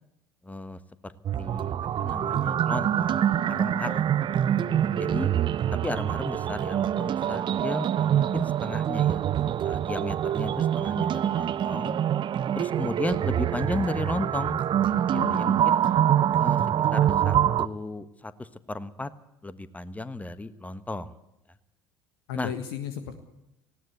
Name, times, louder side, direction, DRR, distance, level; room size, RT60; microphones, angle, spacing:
voice 1, 0.4-1.1 1.4-4.2 5.0-5.3 5.7-9.2 9.6-12.0 12.5-14.6 15.1-15.8 16.4-16.6 16.9-19.1 19.4-21.1 22.3-22.5, left 2 dB, 10° left, 14 dB, 1.4 m, -34 dB
sound 1, 1.2-17.7, right 10 dB, 40° right, 0.7 m, -25 dB
voice 2, 3.5-3.9 4.5-5.1 15.1-15.9 22.3-23.2, left 9 dB, 70° left, 8 dB, 1.6 m, -37 dB
19.5 x 17.5 x 8.2 m, 0.88 s
figure-of-eight pair, 60°, 13 cm